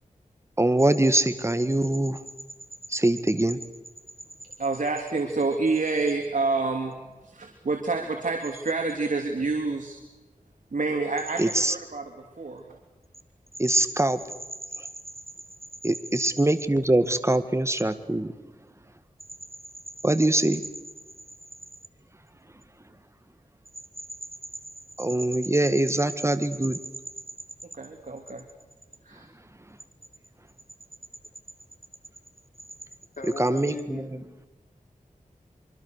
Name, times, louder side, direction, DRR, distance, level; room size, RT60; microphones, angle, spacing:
voice 1, 0.6-2.2 2.9-3.6 11.4-11.7 13.6-14.2 15.8-18.3 20.0-20.6 25.0-26.8 33.4-34.0, right 1 dB, 20° right, 11 dB, 1.7 m, -23 dB
voice 2, 4.6-7.0 7.2-10.0 10.7-12.6 27.7-28.4 29.0-29.2, right 3 dB, 70° right, 3 dB, 3.0 m, -28 dB
voice 3, 33.2-34.5, left 4 dB, 65° left, 5 dB, 3.7 m, -39 dB
25.0 x 25.0 x 6.7 m, 1.1 s
wide cardioid pair, 55°, 14 cm